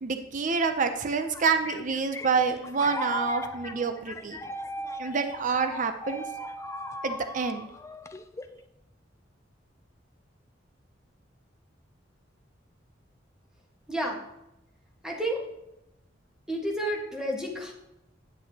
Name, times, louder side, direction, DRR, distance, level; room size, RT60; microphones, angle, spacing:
voice 1, 0.0-4.4 5.0-6.2 7.0-7.7, right 5 dB, 45° right, 8 dB, 0.5 m, -27 dB
sound 1, 1.1-8.6, left 1 dB, 15° left, 0.3 m, -38 dB
voice 2, 13.9-14.2 15.0-15.4 16.5-17.7, right 1 dB, 5° right, 0 dB, 1.4 m, -30 dB
9.2 x 7.7 x 2.8 m, 0.88 s
head